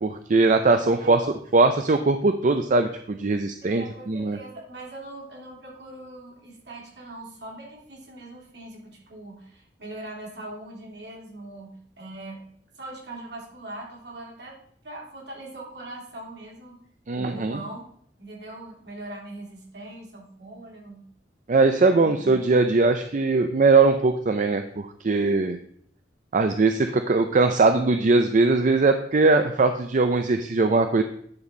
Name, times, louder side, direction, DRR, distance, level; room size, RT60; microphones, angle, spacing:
voice 1, 0.0-1.3 1.5-4.4 17.1-17.6 21.5-25.6 26.3-31.0, right 3 dB, 45° right, 7 dB, 0.5 m, -20 dB
voice 2, 1.0-1.3 3.6-12.4 12.8-14.5 14.8-16.8 17.1-17.9 18.2-21.0 21.8-22.2, right 2 dB, 65° right, -3 dB, 3.0 m, -41 dB
9.7 x 4.3 x 5.2 m, 0.64 s
head